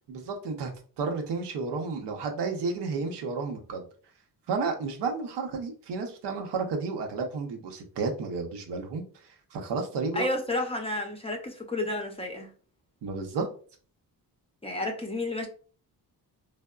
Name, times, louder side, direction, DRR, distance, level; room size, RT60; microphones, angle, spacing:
voice 1, 0.1-0.7 1.0-3.9 4.5-9.0 9.5-10.3 13.0-13.5, right 4 dB, 80° right, 4 dB, 0.8 m, -31 dB
voice 2, 10.1-12.5 14.6-15.5, left 2 dB, 15° left, 2 dB, 0.5 m, -31 dB
3.4 x 2.0 x 2.2 m, 0.42 s
cardioid pair, 85°, 40 cm